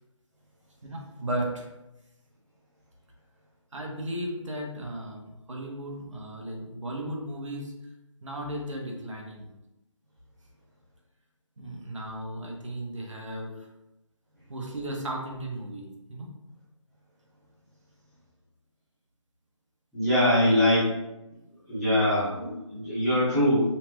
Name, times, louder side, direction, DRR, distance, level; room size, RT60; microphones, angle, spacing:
voice 1, 0.8-1.7 3.7-7.7 8.2-9.5 11.6-13.5 14.5-16.3, right 1 dB, 70° right, 0 dB, 1.1 m, -35 dB
voice 2, 19.9-20.9 21.7-23.6, left 1 dB, ahead, -21 dB, 0.6 m, -23 dB
5.6 x 3.1 x 2.2 m, 0.97 s
figure-of-eight pair, 175°, 17 cm